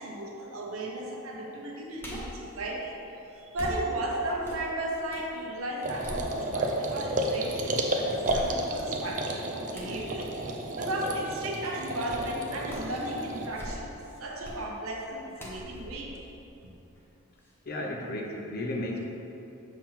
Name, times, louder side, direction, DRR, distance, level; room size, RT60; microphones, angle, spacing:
voice 1, 0.0-2.9 3.3-13.9 14.2-16.1, right 1 dB, 70° right, -1 dB, 1.0 m, -35 dB
sound 1, 2.0-2.5 3.5-5.3 5.7-6.8 7.3-7.4 8.2-8.9 9.7-10.0 12.1-12.3 12.7-13.0 13.4-14.0 14.4-14.7 15.4-17.0 17.4-17.5, equal, 10° left, 0.7 m, -41 dB
sound 2, 5.8-13.5, right 1 dB, 35° right, 0.5 m, -32 dB
voice 2, 17.7-19.1, left 1 dB, 45° left, 0 dB, 0.7 m, -33 dB
7.2 x 2.9 x 5.7 m, 2.8 s
head